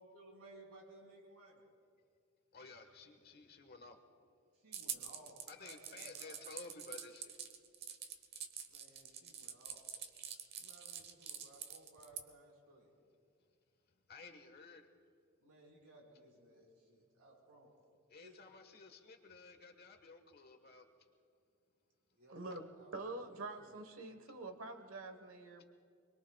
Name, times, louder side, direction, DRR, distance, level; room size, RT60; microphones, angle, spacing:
voice 1, 0.0-1.6 4.5-6.4 8.7-9.9 10.6-12.9 15.4-17.7 18.2-18.4 22.1-23.8, right 2 dB, 90° right, -3 dB, 5.0 m, -60 dB
voice 2, 2.5-4.0 5.5-7.3 14.1-14.8 18.1-20.8, left 3 dB, 45° left, 6 dB, 1.4 m, -54 dB
sound 1, 4.7-12.2, right 8 dB, 45° right, 1.0 m, -46 dB
voice 3, 22.3-22.7 22.9-25.6, right 2 dB, 65° right, 8 dB, 1.4 m, -46 dB
28.0 x 22.0 x 2.4 m, 2.4 s
head